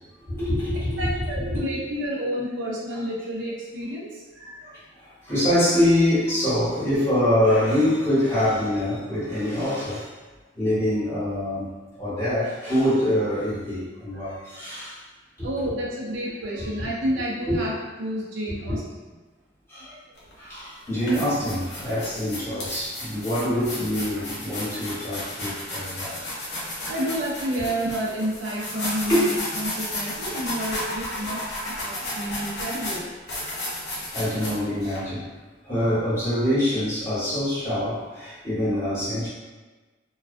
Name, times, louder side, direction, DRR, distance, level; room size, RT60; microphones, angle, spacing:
voice 1, 0.3-1.6 5.0-10.1 10.5-11.7 12.0-15.0 15.4-15.5 16.8-16.9 17.1-17.2 17.5-17.6 18.7-18.8 19.7-19.9 20.4-26.3 26.6-26.8 28.8-29.3 34.1-35.3 35.6-39.3, left 1 dB, 15° left, -12 dB, 1.0 m, -25 dB
voice 2, 1.0-4.8 14.1-14.4 15.4-18.8 19.9-20.0 26.5-33.1, equal, 80° right, -4 dB, 0.6 m, -30 dB
sound 1, 20.2-20.3 20.8-35.0, left 1 dB, 60° left, 0.7 m, -33 dB
2.3 x 2.2 x 2.4 m, 1.3 s
head